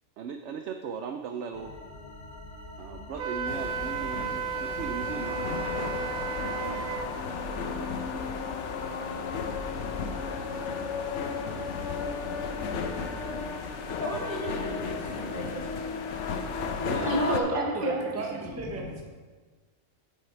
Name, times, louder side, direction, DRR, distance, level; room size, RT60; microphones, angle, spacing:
voice 1, 0.2-1.7 2.8-5.6 16.8-18.4, right 6 dB, 65° right, 6 dB, 0.8 m, -37 dB
sound 1, 1.5-7.2, left 2 dB, 30° left, 0.9 m, -44 dB
Wind instrument woodwind instrument, 3.2-7.1, right 6 dB, 85° right, 1.1 m, -33 dB
sound 2, 3.5-17.4, left 5 dB, 60° left, 1.0 m, -34 dB
voice 2, 14.0-15.7 17.0-18.0, equal, 40° right, -2 dB, 1.8 m, -31 dB
voice 3, 17.3-19.0, right 2 dB, 10° right, 0 dB, 1.0 m, -36 dB
8.3 x 7.7 x 4.5 m, 1.4 s
omnidirectional pair, 1.5 m